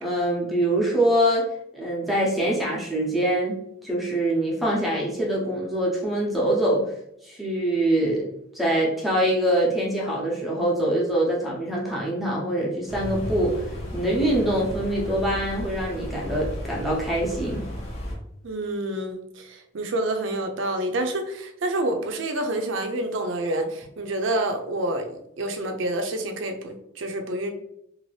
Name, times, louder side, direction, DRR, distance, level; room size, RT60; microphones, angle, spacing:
voice 1, 0.0-1.5 1.7-6.9 7.2-8.3 8.5-13.5 13.9-17.7, right 1 dB, ahead, -5 dB, 0.7 m, -24 dB
sound 1, 12.9-18.2, equal, 35° left, 0.7 m, -34 dB
voice 2, 18.4-27.5, right 1 dB, 70° right, 5 dB, 0.5 m, -28 dB
2.7 x 2.4 x 3.1 m, 0.76 s
head